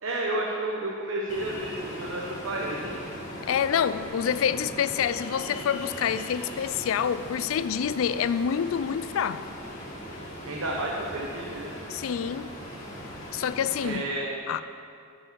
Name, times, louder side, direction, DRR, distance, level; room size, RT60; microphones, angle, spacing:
voice 1, 0.0-3.0 10.5-11.7 13.8-14.3, right 1 dB, 85° right, 1.0 m, -31 dB
Ocean, 1.3-13.9, equal, 35° left, 1.8 m, -39 dB
voice 2, 3.5-9.5 11.9-12.6 13.3-14.0 14.5-14.6, left 8 dB, 80° left, 0.3 m, -27 dB
7.6 x 6.1 x 7.5 m
head